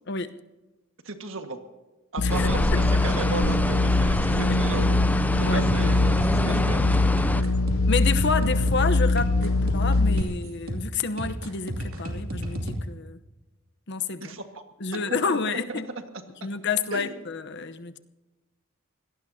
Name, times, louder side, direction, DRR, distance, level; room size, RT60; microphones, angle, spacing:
voice 1, 1.0-1.6 2.1-5.0 5.4-7.3 14.2-14.6 14.9-15.4 15.7-15.8 16.9-17.2, right 3 dB, 65° right, 6 dB, 1.7 m, -35 dB
sound 1, 2.2-10.2, left 2 dB, 85° left, 0.7 m, -23 dB
voice 2, 2.2-2.5 4.5-4.6 5.4-5.6 7.3-7.5 7.9-13.2 13.9-14.4 14.8-15.9 16.4-18.0, left 4 dB, 55° left, 10 dB, 0.9 m, -29 dB
sound 2, 2.3-7.4, left 1 dB, 10° left, 0.4 m, -27 dB
sound 3, 5.4-12.8, equal, 85° right, 2.7 m, -33 dB
25.0 x 18.0 x 2.8 m, 1.1 s
head